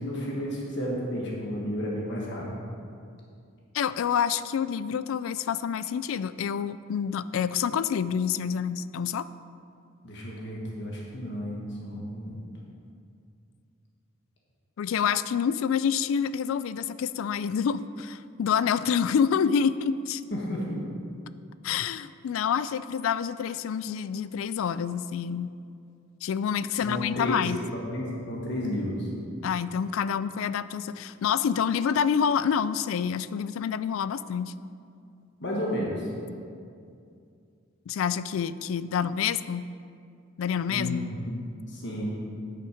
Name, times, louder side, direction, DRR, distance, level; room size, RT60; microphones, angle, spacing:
voice 1, 0.0-2.5 10.0-12.4 20.3-20.8 26.7-29.1 35.4-36.1 40.7-41.4 41.7-42.1, equal, 55° left, -3 dB, 1.5 m, -32 dB
voice 2, 3.7-9.2 14.8-20.2 21.6-25.5 26.2-27.6 29.4-34.5 37.9-39.7 40.4-41.1, left 7 dB, 70° left, 14 dB, 0.3 m, -27 dB
10.0 x 5.9 x 5.1 m, 2.4 s
head